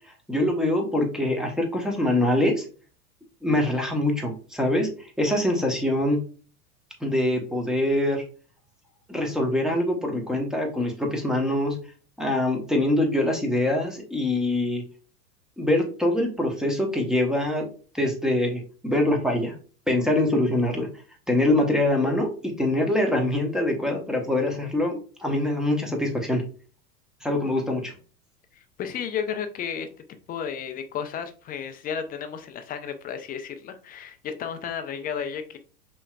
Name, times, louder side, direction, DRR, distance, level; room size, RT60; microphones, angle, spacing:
voice 1, 0.3-2.6 3.4-6.2 7.0-8.2 9.1-11.8 12.2-14.8 15.6-17.7 17.9-19.5 19.9-20.9 21.3-26.4 27.2-27.9, left 1 dB, ahead, 2 dB, 0.9 m, -24 dB
voice 2, 28.8-29.9 30.3-35.6, left 7 dB, 20° left, 8 dB, 0.5 m, -33 dB
5.5 x 3.0 x 2.3 m, 0.38 s
figure-of-eight pair, 85°, 46 cm